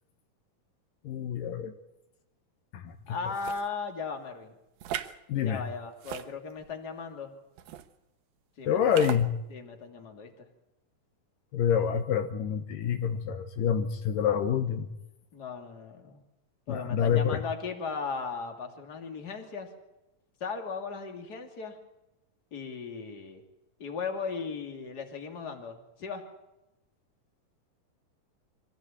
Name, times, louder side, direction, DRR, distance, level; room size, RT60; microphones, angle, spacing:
voice 1, 1.0-1.7 2.7-2.9 5.3-5.6 8.7-9.3 11.5-14.9 16.7-17.4, left 8 dB, 75° left, 7 dB, 2.7 m, -27 dB
voice 2, 3.1-4.5 5.4-7.3 8.6-9.1 9.5-10.5 15.3-16.2 16.7-19.7 20.4-21.8 22.5-23.4 23.8-26.2, left 5 dB, 30° left, 3 dB, 2.9 m, -37 dB
sound 1, 3.3-3.7 4.8-5.2 6.0-6.7 7.6-7.9 8.9-9.2, right 11 dB, 85° right, 2.9 m, -37 dB
25.0 x 16.0 x 8.8 m, 0.91 s
omnidirectional pair, 4.0 m